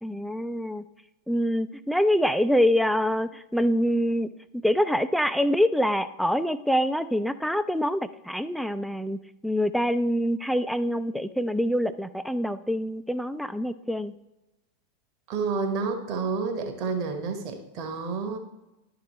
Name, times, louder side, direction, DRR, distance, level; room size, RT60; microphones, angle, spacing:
voice 1, 0.0-0.8 1.3-14.1, equal, ahead, 12 dB, 0.3 m, -25 dB
voice 2, 15.3-18.4, right 4 dB, 40° right, 5 dB, 1.2 m, -29 dB
11.0 x 5.0 x 3.1 m, 0.95 s
figure-of-eight pair, 90°, 0 cm